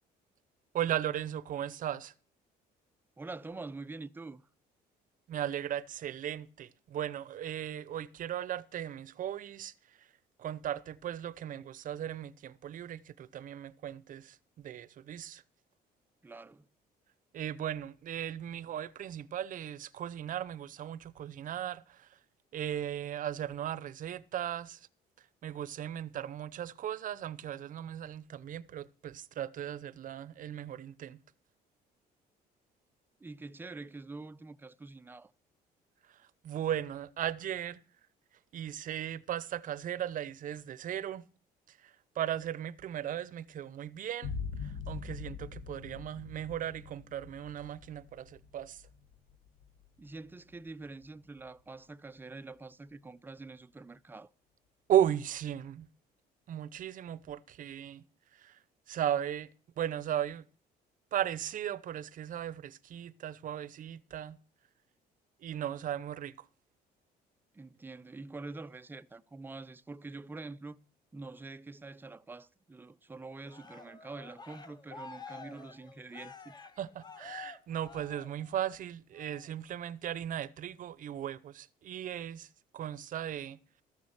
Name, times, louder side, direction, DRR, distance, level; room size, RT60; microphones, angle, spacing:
voice 1, 0.7-2.1 5.3-10.1 10.4-15.4 17.3-22.2 22.5-24.9 25.2-31.2 36.1-37.8 38.5-41.3 41.7-44.3 44.6-48.8 54.9-55.9 56.5-58.0 58.3-58.6 58.9-59.5 59.8-60.5 61.1-64.4 65.4-66.5 76.8-83.6, right 10 dB, 50° right, 0.7 m, -36 dB
voice 2, 3.2-4.4 16.2-16.7 33.2-35.3 50.0-54.3 67.5-70.8 71.1-76.6, right 3 dB, 10° right, 0.6 m, -46 dB
sound 1, 44.2-51.6, left 6 dB, 75° left, 1.5 m, -44 dB
Cheering, 73.4-78.7 79.1-79.5, left 5 dB, 25° left, 1.5 m, -50 dB
13.5 x 7.1 x 6.5 m
cardioid pair, 110°, 17 cm